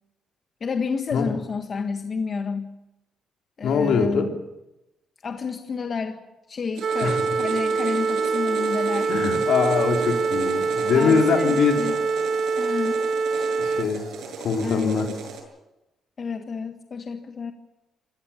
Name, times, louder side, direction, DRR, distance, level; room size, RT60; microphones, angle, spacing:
voice 1, 0.6-2.7 3.6-4.3 5.2-6.2 6.5-9.1 10.9-11.9 12.6-13.0 13.3-13.5 14.6-15.2 16.2-17.5, left 5 dB, 45° left, 6 dB, 1.5 m, -30 dB
voice 2, 3.6-4.3 7.0-7.2 9.1-11.9 13.6-14.1 14.4-15.1, left 5 dB, 70° left, 3 dB, 3.7 m, -22 dB
sound 1, 6.7-15.4, right 4 dB, 75° right, 7.7 m, -36 dB
sound 2, 6.8-13.8, right 4 dB, 50° right, 1.0 m, -24 dB
26.5 x 18.0 x 7.2 m, 0.96 s
cardioid pair, 90°, 0 cm